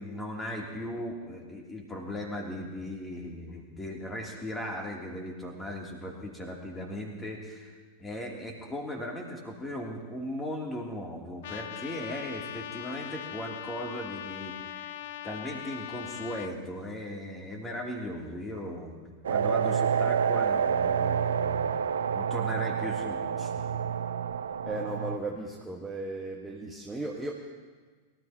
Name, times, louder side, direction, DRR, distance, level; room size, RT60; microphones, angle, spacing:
voice 1, 0.0-14.9 15.2-19.0 19.3-21.8 22.1-23.5, left 1 dB, 10° left, -1 dB, 3.2 m, -38 dB
Trumpet, 11.4-16.5, left 11 dB, 55° left, 0.5 m, -40 dB
sound 1, 19.2-25.2, right 7 dB, 65° right, 0.7 m, -28 dB
voice 2, 24.6-27.3, right 2 dB, 5° right, -3 dB, 1.7 m, -36 dB
23.5 x 14.0 x 3.0 m, 1.4 s
figure-of-eight pair, 90°, 0 cm